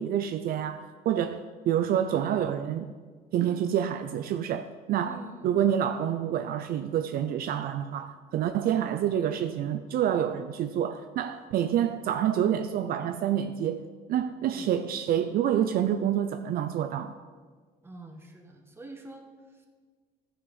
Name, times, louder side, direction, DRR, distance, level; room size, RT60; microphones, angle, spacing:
voice 1, 0.0-2.9 3.3-5.2 5.4-17.2, right 10 dB, 60° right, 0.4 m, -28 dB
voice 2, 5.0-5.5 11.5-11.9 14.4-14.8 17.8-19.7, right 1 dB, 15° right, 1.4 m, -47 dB
12.0 x 5.0 x 5.4 m
cardioid pair, 110°, 17 cm